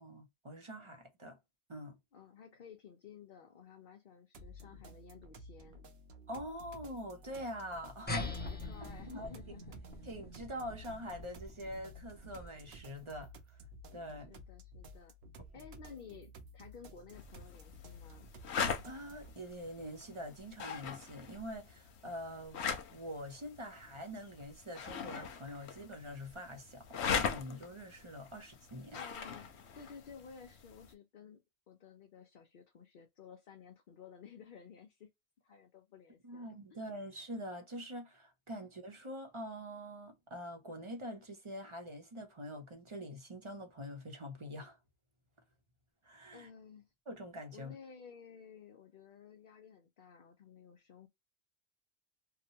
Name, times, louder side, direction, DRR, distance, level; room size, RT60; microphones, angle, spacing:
voice 1, 0.0-1.4 1.7-2.0 6.3-8.5 9.1-9.3 10.0-13.6 13.9-14.3 18.8-22.6 22.9-29.0 36.2-44.8 46.0-46.5 47.1-47.7, equal, 30° right, 0.7 m, -45 dB
voice 2, 2.1-5.8 8.5-10.1 14.3-15.1 15.5-18.3 28.9-29.5 29.7-35.1 35.4-36.8 46.3-46.9 47.5-51.1, left 6 dB, 60° left, 0.7 m, -54 dB
sound 1, 4.3-19.3, right 1 dB, 75° right, 0.9 m, -54 dB
sound 2, 8.1-12.9, left 2 dB, 10° left, 0.7 m, -44 dB
sound 3, 17.1-30.9, left 6 dB, 90° left, 0.9 m, -41 dB
2.8 x 2.1 x 2.7 m
omnidirectional pair, 1.1 m